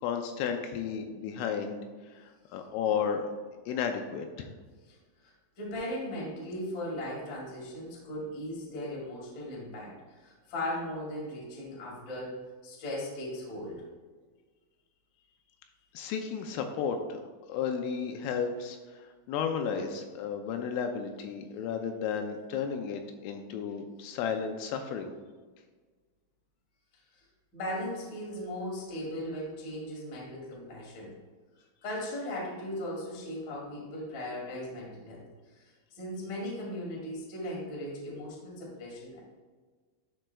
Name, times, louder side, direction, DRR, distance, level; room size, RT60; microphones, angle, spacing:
voice 1, 0.0-1.8 2.2-3.3 3.7-4.5 15.9-17.2 17.5-18.8 19.3-25.1, left 7 dB, 85° left, 5 dB, 3.0 m, -33 dB
voice 2, 5.2-13.8 27.5-31.1 31.8-35.2 35.5-39.2, left 1 dB, 50° left, -5 dB, 1.4 m, -38 dB
12.5 x 4.4 x 2.3 m, 1.4 s
omnidirectional pair, 5.9 m